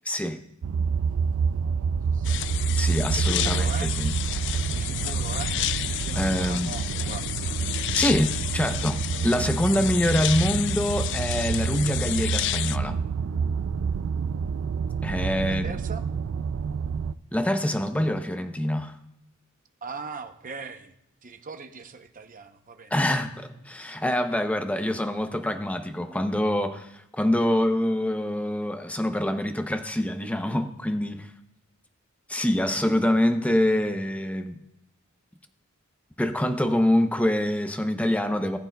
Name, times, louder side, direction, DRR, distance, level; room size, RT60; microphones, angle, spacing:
voice 1, 0.1-0.4 2.8-4.1 6.2-6.8 7.9-13.0 15.0-15.7 17.3-19.0 22.9-31.3 32.3-34.6 36.2-38.6, left 1 dB, 5° left, 8 dB, 0.6 m, -25 dB
sound 1, 0.6-17.1, right 6 dB, 65° right, 0.3 m, -28 dB
sound 2, 2.2-12.8, left 14 dB, 55° left, 0.3 m, -31 dB
voice 2, 3.1-3.9 4.7-5.6 5.9-7.6 15.1-16.0 19.8-20.9 21.2-23.4, right 4 dB, 40° right, 7 dB, 0.7 m, -40 dB
19.0 x 8.7 x 2.3 m, 0.79 s
head